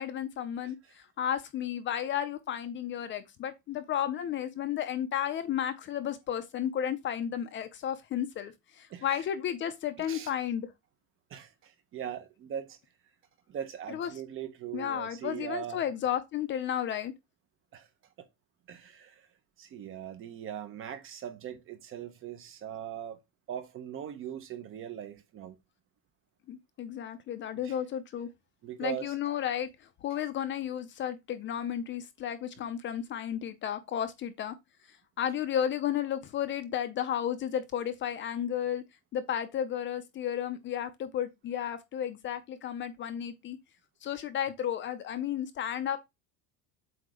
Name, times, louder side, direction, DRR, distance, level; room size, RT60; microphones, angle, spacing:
voice 1, 0.0-10.7 13.9-14.1 14.7-17.1 26.5-28.3 28.8-29.7 30.0-34.5 34.9-38.8 39.1-43.6 44.0-46.0, left 9 dB, 30° left, 0.6 m, -33 dB
voice 2, 8.9-9.3 10.0-10.3 11.3-12.8 13.5-15.8 17.7-17.9 18.2-18.3 18.7-19.3 19.6-23.2 23.5-25.6 27.5-27.8 28.6-29.2 30.1-30.2, right 9 dB, 30° right, 0.8 m, -40 dB
7.8 x 2.8 x 4.9 m
cardioid pair, 175°, 39 cm